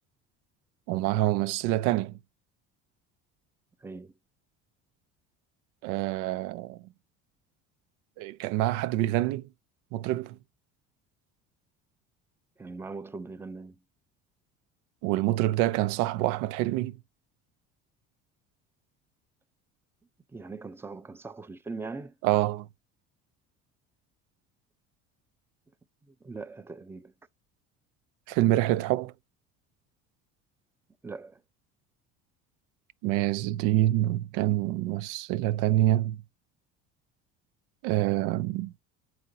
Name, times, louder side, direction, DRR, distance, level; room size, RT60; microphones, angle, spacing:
voice 1, 0.9-2.1 5.8-6.8 8.2-9.5 9.9-10.4 15.0-17.0 22.2-22.7 28.3-29.1 33.0-36.2 37.8-38.7, right 15 dB, 85° right, 0.5 m, -26 dB
voice 2, 3.8-4.2 12.6-13.8 20.3-22.1 26.0-27.1 31.0-31.4, right 3 dB, 10° right, 0.5 m, -41 dB
7.6 x 5.0 x 2.7 m
supercardioid pair, 100°, 30 cm